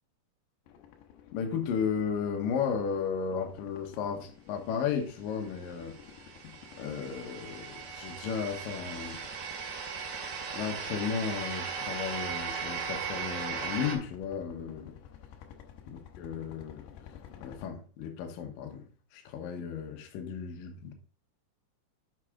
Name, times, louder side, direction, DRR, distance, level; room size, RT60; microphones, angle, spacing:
sound 1, 0.7-17.7, left 9 dB, 85° left, 3.0 m, -53 dB
voice 1, 1.3-6.0 6.4-6.5 6.8-9.2 10.5-14.9 16.2-16.9 17.4-18.8 19.1-20.9, left 6 dB, 65° left, 2.4 m, -34 dB
sound 2, 5.5-14.0, right 6 dB, 80° right, 3.9 m, -38 dB
8.0 x 6.1 x 3.6 m
omnidirectional pair, 5.0 m